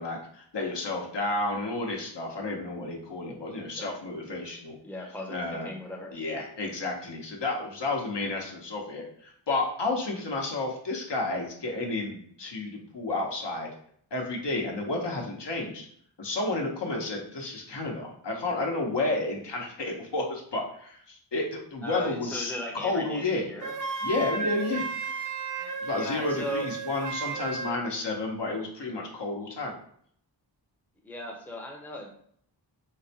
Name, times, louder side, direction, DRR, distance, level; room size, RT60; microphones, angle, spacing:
voice 1, 0.0-4.8 5.3-5.7 6.1-13.7 14.1-15.9 16.2-23.5 24.0-24.9 25.8-29.7, left 2 dB, 65° left, 0 dB, 0.8 m, -31 dB
voice 2, 4.8-6.2 21.8-23.7 25.9-26.7 31.0-32.1, left 1 dB, 5° left, 0 dB, 0.5 m, -37 dB
Wind instrument woodwind instrument, 23.6-27.8, right 4 dB, 45° right, 0.4 m, -34 dB
3.9 x 2.1 x 2.7 m, 0.63 s
wide cardioid pair, 55°, 45 cm